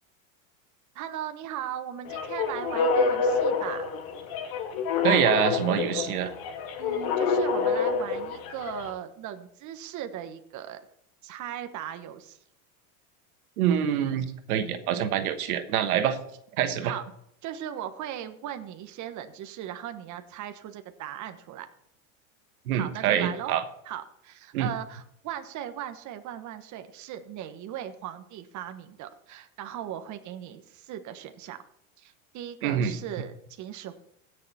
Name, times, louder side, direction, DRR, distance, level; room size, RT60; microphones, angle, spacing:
voice 1, 0.9-3.9 6.8-10.8 11.2-12.4 16.8-17.0 17.4-21.7 22.7-23.5 23.8-31.6 32.0-34.0, right 11 dB, 40° right, 8 dB, 1.3 m, -38 dB
sound 1, 2.1-8.9, left 5 dB, 55° left, 2.2 m, -27 dB
voice 2, 5.0-6.3 13.6-16.2 16.6-16.9 22.7-23.6 24.5-24.7 32.6-32.9, right 9 dB, 85° right, 9 dB, 1.3 m, -25 dB
16.0 x 6.9 x 4.2 m, 0.74 s
supercardioid pair, 110°, 43 cm